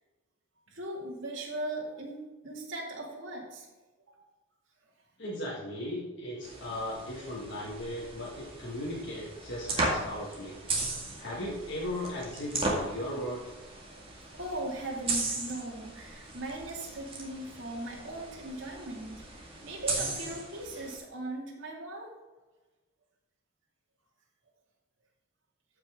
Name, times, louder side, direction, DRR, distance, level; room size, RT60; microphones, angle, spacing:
voice 1, 0.7-3.7 7.6-7.7 14.3-22.1, right 1 dB, 60° right, -3 dB, 2.5 m, -39 dB
voice 2, 5.2-10.6 11.2-13.6, left 1 dB, 55° left, -5 dB, 1.9 m, -37 dB
sound 1, 6.4-21.0, right 2 dB, 25° right, 2.1 m, -37 dB
13.5 x 6.0 x 3.7 m, 1.2 s
head